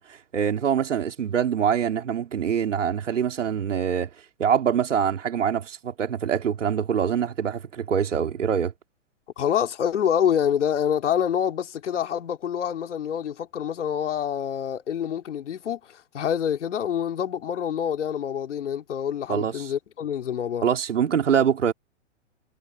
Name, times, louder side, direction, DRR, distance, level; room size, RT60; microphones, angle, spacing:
voice 1, 0.0-4.1 4.4-8.7 19.3-19.7 20.6-21.7, right 8 dB, 80° right, 3.9 m, -24 dB
voice 2, 9.4-15.8 16.1-20.7, left 9 dB, 70° left, 3.6 m, -26 dB
hypercardioid pair, 130°, 37 cm